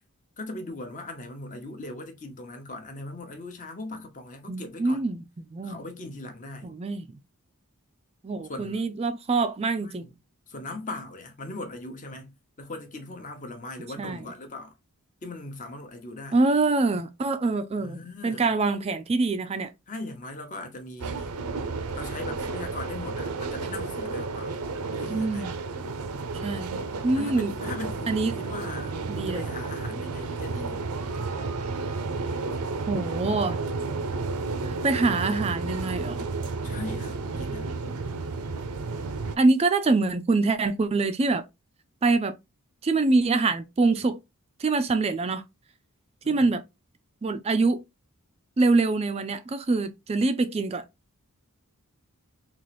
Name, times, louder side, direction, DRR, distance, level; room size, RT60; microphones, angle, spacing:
voice 1, 0.4-5.0 5.6-6.7 8.5-8.8 9.8-10.1 10.5-14.7 15.2-16.4 17.8-18.5 19.9-21.3 21.9-24.6 24.9-25.5 27.2-30.8 36.6-37.7 46.2-46.5, left 2 dB, 35° left, 0.8 m, -39 dB
voice 2, 4.5-5.2 5.5-5.8 6.6-7.0 8.2-10.0 14.0-14.2 16.3-19.7 25.1-25.5 26.4-26.7 27.0-27.5 28.1-28.4 29.1-29.4 32.9-33.6 34.6-36.3 39.4-41.4 42.0-42.4 42.8-44.2 44.6-45.4 46.3-46.6 47.2-47.8 48.6-50.8, right 3 dB, 25° right, 0.3 m, -25 dB
sound 1, 21.0-39.4, right 3 dB, 85° right, 0.6 m, -32 dB
3.8 x 2.5 x 3.1 m
head